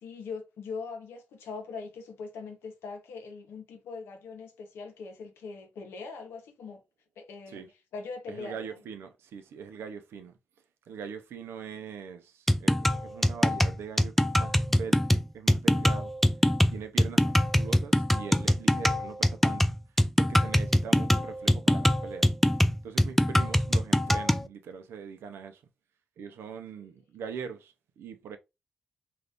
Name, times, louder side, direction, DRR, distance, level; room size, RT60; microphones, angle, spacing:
voice 1, 0.0-6.8 7.2-7.6 7.9-8.8, left 4 dB, 90° left, 0.8 m, -41 dB
voice 2, 8.3-10.3 10.9-16.1 16.7-19.7 20.2-22.3 22.8-25.6 26.2-28.4, right 6 dB, 85° right, 0.5 m, -42 dB
sound 1, 12.5-24.5, equal, 5° left, 0.3 m, -23 dB
2.5 x 2.4 x 3.4 m
supercardioid pair, 50°, 4 cm